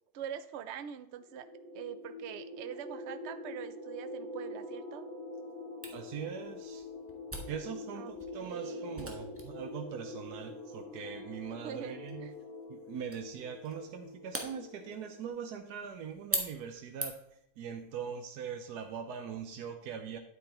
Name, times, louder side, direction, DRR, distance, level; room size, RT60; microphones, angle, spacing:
voice 1, 0.1-1.5 1.7-5.0 8.0-9.1 11.5-12.3, right 9 dB, 65° right, 11 dB, 0.7 m, -44 dB
sound 1, 1.2-15.5, left 2 dB, 45° left, 2.4 m, -45 dB
Camera, 5.8-17.4, right 1 dB, 10° right, 1.1 m, -44 dB
voice 2, 5.9-6.9 7.5-12.3 12.7-17.2 17.6-20.2, right 7 dB, 85° right, 5 dB, 1.3 m, -41 dB
9.4 x 8.2 x 3.0 m, 0.78 s
omnidirectional pair, 1.7 m